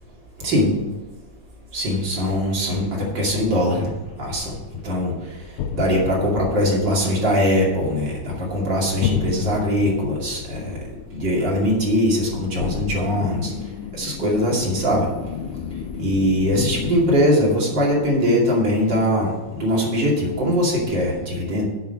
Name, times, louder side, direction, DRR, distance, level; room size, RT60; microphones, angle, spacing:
voice 1, 1.7-3.9 4.2-4.5 4.8-5.1 5.7-10.7 11.1-13.5 14.0-15.1 16.0-21.6, equal, 35° right, -4 dB, 2.3 m, -21 dB
sound 1, 3.8-17.2, left 7 dB, 85° left, 3.0 m, -33 dB
8.5 x 6.3 x 7.7 m, 1.2 s
omnidirectional pair, 5.2 m